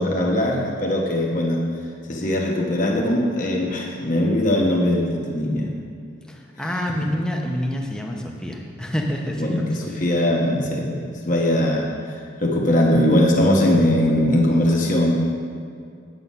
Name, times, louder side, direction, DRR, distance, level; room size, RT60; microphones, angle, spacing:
voice 1, 0.0-1.6 2.1-5.7 9.4-15.1, left 1 dB, 40° left, -1 dB, 1.2 m, -20 dB
voice 2, 6.3-10.2, equal, 5° left, 0 dB, 0.9 m, -28 dB
9.1 x 7.8 x 5.5 m, 2.3 s
head